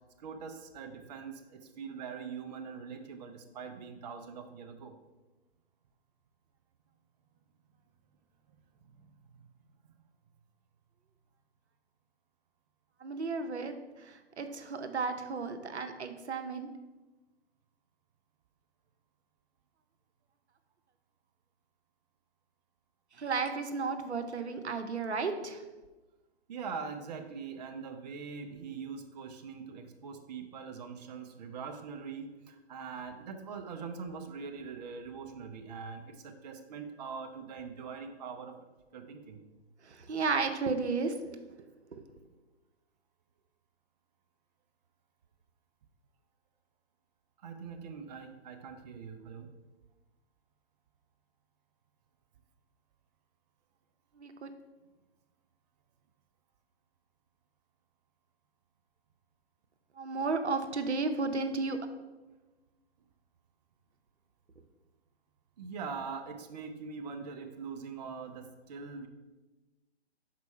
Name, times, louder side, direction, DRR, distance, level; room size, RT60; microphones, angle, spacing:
voice 1, 0.2-5.0 8.9-9.1 9.4-9.5 9.9-10.0 26.5-38.6 38.9-39.4 47.4-49.5 65.6-69.1, right 5 dB, 40° right, 6 dB, 0.6 m, -43 dB
voice 2, 13.0-16.7 23.2-25.6 39.8-41.2 41.9-42.0 54.2-54.5 60.0-61.8, right 4 dB, 85° right, 8 dB, 0.8 m, -33 dB
6.0 x 4.6 x 4.2 m, 1.2 s
hypercardioid pair, 140°, 33 cm